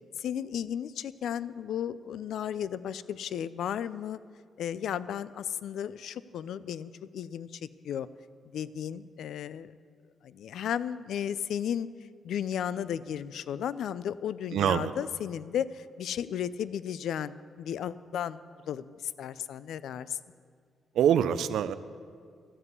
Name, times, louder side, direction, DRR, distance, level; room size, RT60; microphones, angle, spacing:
voice 1, 0.2-4.2 4.6-8.1 8.5-9.7 10.2-11.9 12.2-18.4 18.7-20.2, left 9 dB, 75° left, 17 dB, 0.3 m, -34 dB
voice 2, 14.5-14.9 20.9-21.7, right 9 dB, 80° right, 13 dB, 0.4 m, -25 dB
13.5 x 5.5 x 8.0 m, 2.1 s
wide cardioid pair, 170°, 0 cm